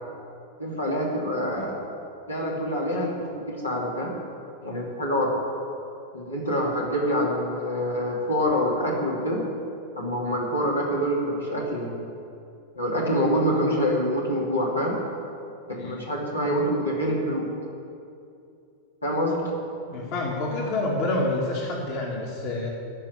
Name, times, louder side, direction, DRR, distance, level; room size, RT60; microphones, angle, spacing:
voice 1, 0.6-1.8 2.3-4.1 4.6-5.3 6.1-9.4 9.9-12.1 12.7-14.9 15.7-17.5 19.0-19.5, equal, 80° left, -3 dB, 2.8 m, -26 dB
voice 2, 19.9-22.7, left 2 dB, 45° left, -1 dB, 1.9 m, -28 dB
14.5 x 5.5 x 9.5 m, 2.6 s
figure-of-eight pair, 90°, 0 cm